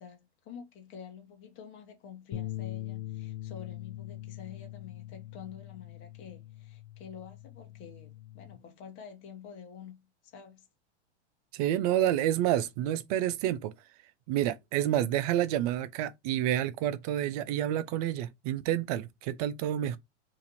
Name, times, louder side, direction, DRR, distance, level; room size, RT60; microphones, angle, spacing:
voice 1, 0.0-10.7, left 7 dB, 35° left, 1.2 m, -48 dB
sound 1, 2.3-8.6, left 14 dB, 50° left, 0.8 m, -42 dB
voice 2, 11.5-13.7 14.3-20.0, right 12 dB, 35° right, 0.4 m, -29 dB
2.9 x 2.5 x 4.1 m
hypercardioid pair, 110°, 35 cm